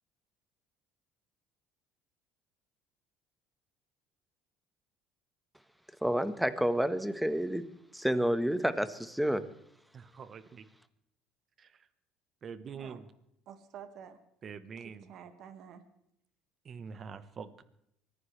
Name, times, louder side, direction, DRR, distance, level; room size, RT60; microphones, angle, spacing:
voice 1, 6.0-7.7 7.9-9.5, equal, 5° right, 12 dB, 1.3 m, -29 dB
voice 2, 9.9-10.7 11.6-11.7 12.4-13.1 14.4-15.1 16.6-17.6, right 6 dB, 45° right, 13 dB, 1.2 m, -45 dB
voice 3, 13.5-14.2 14.8-15.8, right 8 dB, 60° right, 9 dB, 1.9 m, -49 dB
24.0 x 15.0 x 3.3 m, 0.75 s
supercardioid pair, 80°, 0 cm